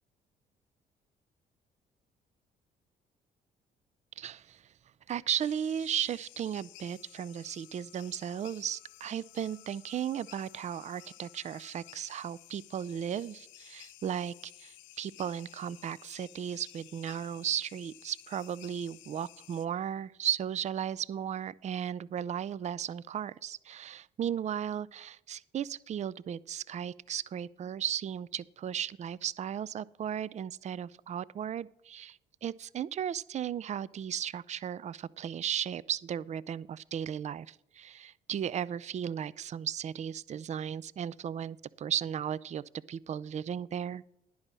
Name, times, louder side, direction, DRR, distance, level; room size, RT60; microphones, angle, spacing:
voice 1, 4.2-4.6 5.1-44.0, right 9 dB, 40° right, 21 dB, 0.4 m, -35 dB
sound 1, 5.4-19.7, left 18 dB, 80° left, 0.5 m, -54 dB
10.5 x 5.5 x 7.3 m, 0.81 s
supercardioid pair, 65°, 19 cm